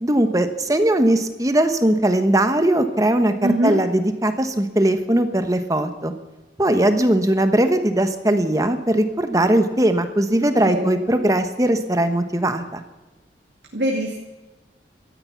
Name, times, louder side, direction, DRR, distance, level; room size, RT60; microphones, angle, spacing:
voice 1, 0.0-6.1 6.6-12.8, right 1 dB, 20° right, 8 dB, 1.1 m, -19 dB
voice 2, 3.4-3.8 10.7-11.0 13.7-14.2, right 1 dB, 75° right, 0 dB, 2.2 m, -22 dB
17.5 x 13.5 x 5.9 m, 1.1 s
head